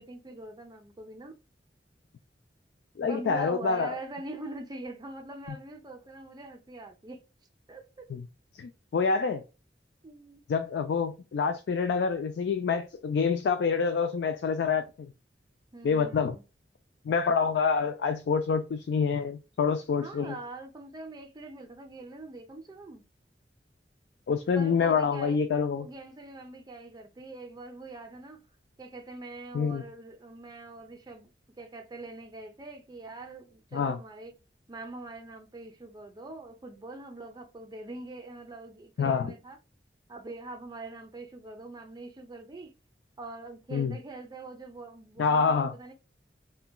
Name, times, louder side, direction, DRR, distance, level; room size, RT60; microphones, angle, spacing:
voice 1, 0.0-1.4 3.0-7.2 7.7-8.1 10.0-10.4 15.7-16.4 20.0-23.0 24.5-25.4 25.8-28.4 28.8-34.3 34.7-39.6 40.1-42.7 43.2-45.9, right 2 dB, 25° right, 0.5 m, -43 dB
voice 2, 3.0-3.9 8.1-8.3 8.6-9.4 10.5-15.1 15.8-16.4 17.1-20.3 24.3-25.9 29.5-29.8 33.7-34.0 39.0-39.3 43.7-44.0 45.2-45.7, left 5 dB, 70° left, 0.3 m, -27 dB
3.7 x 2.2 x 2.2 m
head